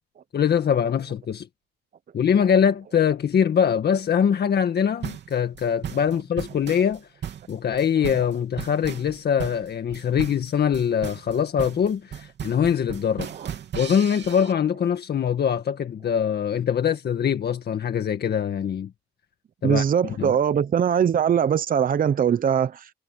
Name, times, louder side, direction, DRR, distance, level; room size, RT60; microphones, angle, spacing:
voice 1, 0.3-1.5 2.1-7.1 7.5-13.3 13.7-18.9 19.6-20.3, left 8 dB, 55° left, 1.8 m, -23 dB
sound 1, 5.0-14.5, right 9 dB, 60° right, 3.1 m, -36 dB
voice 2, 19.6-22.9, right 8 dB, 45° right, 0.8 m, -21 dB
cardioid pair, 90°, 20 cm